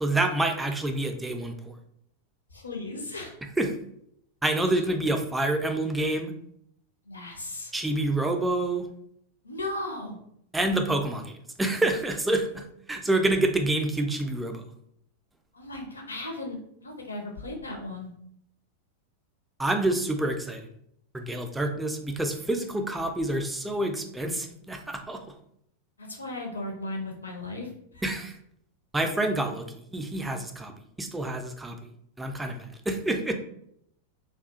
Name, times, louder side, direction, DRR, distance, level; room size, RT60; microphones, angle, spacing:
voice 1, 0.0-1.8 3.6-3.7 4.4-6.3 7.7-8.9 10.5-14.6 19.6-20.7 21.1-25.2 28.0-28.4 28.9-31.8 32.2-33.3, right 2 dB, 5° right, 5 dB, 0.3 m, -27 dB
voice 2, 2.5-3.3 4.7-4.9 7.0-7.7 9.4-10.2 15.5-18.1 26.0-28.0, left 2 dB, 75° left, 1 dB, 0.5 m, -36 dB
2.4 x 2.3 x 2.5 m, 0.71 s
figure-of-eight pair, 90°, 0 cm